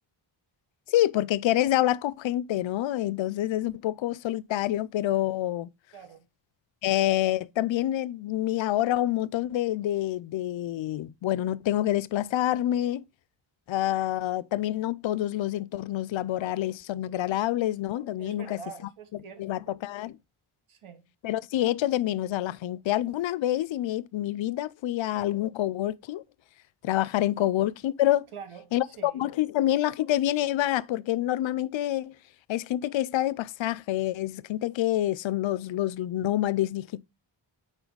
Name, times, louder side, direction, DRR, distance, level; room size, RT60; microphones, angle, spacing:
voice 1, 0.9-5.7 6.8-13.0 13.7-18.6 19.4-20.2 21.2-26.2 26.8-28.3 28.7-32.1 32.5-37.0, left 13 dB, 70° left, 0.5 m, -27 dB
voice 2, 5.9-6.2 18.2-19.4 20.7-21.0 27.4-27.5 28.3-29.3, right 6 dB, 85° right, 1.4 m, -45 dB
5.4 x 4.0 x 4.5 m
cardioid pair, 55°, 49 cm